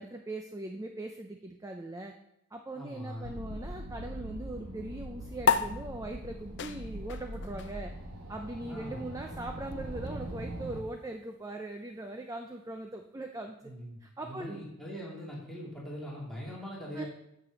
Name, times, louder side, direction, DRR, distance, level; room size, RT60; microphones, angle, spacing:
voice 1, 0.0-2.1 2.5-7.9 8.3-13.7 14.0-14.6 16.9-17.0, right 2 dB, 15° right, 4 dB, 0.5 m, -40 dB
voice 2, 2.7-3.4 8.7-9.1 13.6-17.1, equal, ahead, -6 dB, 2.6 m, -42 dB
sound 1, 3.2-10.8, right 1 dB, 90° right, 1.5 m, -41 dB
sound 2, 5.4-12.2, left 6 dB, 50° left, 0.5 m, -35 dB
8.5 x 6.9 x 6.4 m, 0.82 s
head